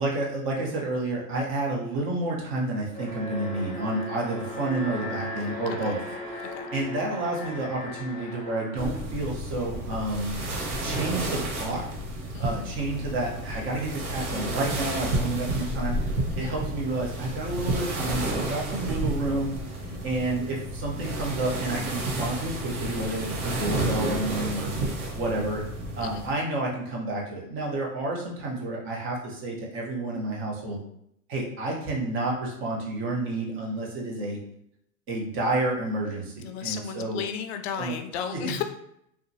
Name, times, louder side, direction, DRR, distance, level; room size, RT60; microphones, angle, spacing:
voice 1, 0.0-6.0 6.3-10.4 10.8-11.8 12.4-16.0 16.4-19.5 20.0-24.7 25.2-25.6 26.0-30.8 31.3-34.4 35.1-37.2 37.8-38.0 38.3-38.6, right 2 dB, 30° right, -2 dB, 0.8 m, -30 dB
Alarm, 2.9-10.0, left 1 dB, 15° left, 0.8 m, -37 dB
sound 1, 8.8-26.3, right 1 dB, 75° right, 1.0 m, -31 dB
voice 2, 12.3-12.7 16.3-16.5 19.8-20.0 26.0-26.2 36.4-38.6, left 9 dB, 50° left, 7 dB, 0.4 m, -34 dB
2.8 x 2.3 x 2.6 m, 0.74 s
hypercardioid pair, 120°, 43 cm